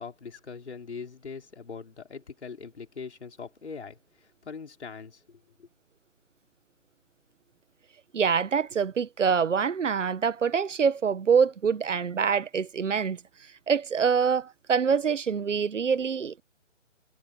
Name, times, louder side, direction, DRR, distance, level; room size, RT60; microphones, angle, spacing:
voice 1, 0.0-5.7, left 5 dB, 60° left, 4.7 m, -42 dB
voice 2, 8.1-13.2 13.7-16.4, right 6 dB, 75° right, 1.2 m, -25 dB
hypercardioid pair, 180°, 37 cm